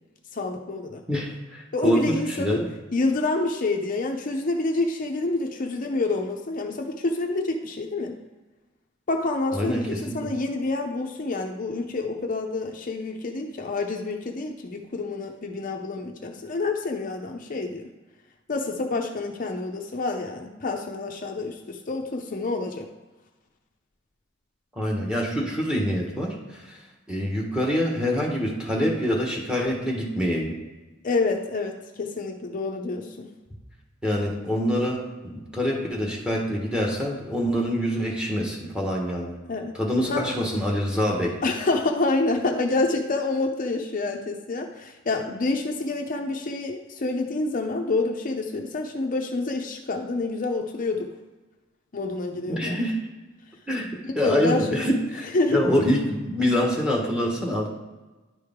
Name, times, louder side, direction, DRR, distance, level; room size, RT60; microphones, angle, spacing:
voice 1, 0.3-1.0 1.7-2.6 2.9-8.2 9.1-17.9 18.5-22.9 31.0-33.3 39.5-39.8 40.1-40.3 41.4-51.1 51.9-52.8 54.2-54.8 55.3-55.6, left 2 dB, 45° left, 3 dB, 0.6 m, -27 dB
voice 2, 1.1-2.7 9.5-10.2 24.8-26.4 26.7-26.8 27.1-30.5 34.0-39.3 39.8-41.4 52.5-53.0 53.7-57.7, equal, 5° right, -1 dB, 1.3 m, -25 dB
10.5 x 4.8 x 3.6 m, 1.2 s
head